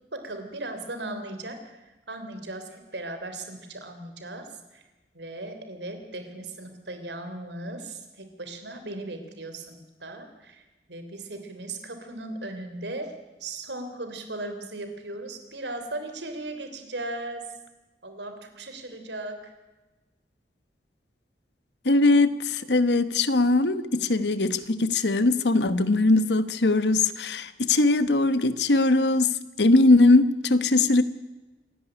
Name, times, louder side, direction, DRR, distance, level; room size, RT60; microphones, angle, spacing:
voice 1, 0.1-4.8 5.1-10.6 10.9-13.1 13.4-17.5 18.0-19.5, right 2 dB, 80° right, 3.4 m, -37 dB
voice 2, 21.8-31.0, left 2 dB, 75° left, 1.2 m, -21 dB
26.5 x 11.0 x 9.9 m
head